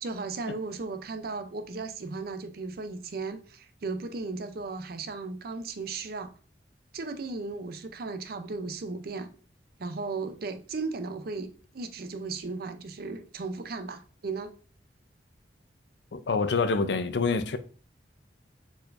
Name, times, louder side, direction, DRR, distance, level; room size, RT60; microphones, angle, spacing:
voice 1, 0.0-6.3 6.9-9.3 9.8-14.5, right 3 dB, 60° right, 0.5 m, -36 dB
voice 2, 16.1-17.6, left 4 dB, 75° left, 0.5 m, -26 dB
4.4 x 4.3 x 2.5 m
head